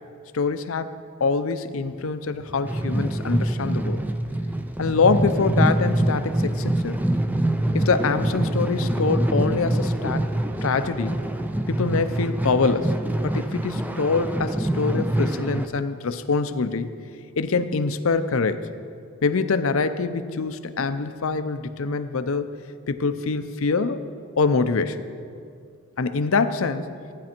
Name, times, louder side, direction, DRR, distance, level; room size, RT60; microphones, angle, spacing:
voice 1, 0.3-0.9 1.2-4.0 4.8-7.0 7.7-10.2 10.6-11.2 11.7-12.9 13.2-16.9 17.4-18.7 19.2-22.6 22.9-24.0 24.4-25.0 26.0-26.8, left 4 dB, 70° left, 11 dB, 0.6 m, -24 dB
sound 1, 2.4-15.7, right 1 dB, 10° right, 0.3 m, -25 dB
15.0 x 9.5 x 4.4 m, 2.3 s
head